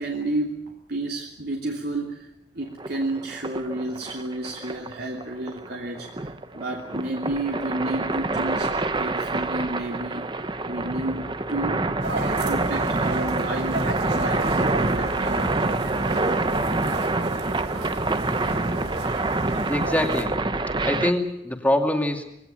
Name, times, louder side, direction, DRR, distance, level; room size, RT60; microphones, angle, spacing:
voice 1, 0.0-2.3 2.5-6.1 6.5-10.2 10.7-11.8 12.5-15.8, right 2 dB, 60° right, -1 dB, 2.9 m, -31 dB
sound 1, 2.8-21.1, right 2 dB, 25° right, 0.9 m, -27 dB
sound 2, 12.0-20.2, right 2 dB, 85° right, 3.2 m, -34 dB
voice 2, 19.7-20.4 20.8-22.2, left 1 dB, 10° left, 4 dB, 2.5 m, -24 dB
21.5 x 18.0 x 9.1 m, 0.84 s
head